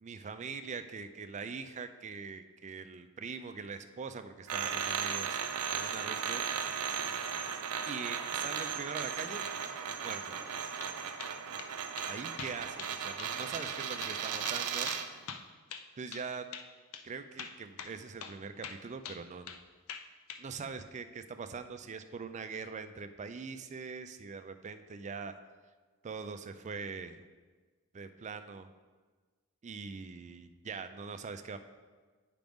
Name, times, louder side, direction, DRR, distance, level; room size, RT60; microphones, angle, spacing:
voice 1, 0.0-5.4 5.7-6.4 7.9-9.5 10.0-10.4 12.1-14.9 15.9-16.5 17.0-19.5 20.4-25.3 26.0-27.2 27.9-28.7 29.6-31.6, right 5 dB, 30° right, 9 dB, 0.4 m, -42 dB
sound 1, 4.5-15.1, right 7 dB, 85° right, 0.5 m, -36 dB
sound 2, 10.5-10.9 11.2-11.7 12.0-12.1 12.4-12.9 13.2-13.3 13.6-13.7 14.0-14.2 14.4-16.3 16.5-16.7 16.9-17.0 17.4-17.9 18.2-18.4 18.6-19.6 19.9-20.4, left 7 dB, 70° left, 0.5 m, -44 dB
9.1 x 5.0 x 3.6 m, 1.4 s
head